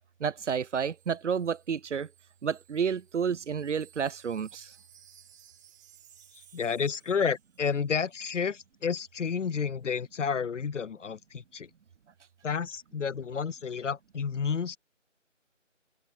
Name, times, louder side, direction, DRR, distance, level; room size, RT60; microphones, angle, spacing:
voice 1, 0.2-2.1 2.4-4.7, right 7 dB, 70° right, 0.5 m, -30 dB
Wind chime, 0.6-8.3, right 9 dB, 15° right, 3.5 m, -60 dB
voice 2, 6.3-11.7 12.4-14.8, left 6 dB, 75° left, 0.6 m, -31 dB
open air
figure-of-eight pair, 165°, 38 cm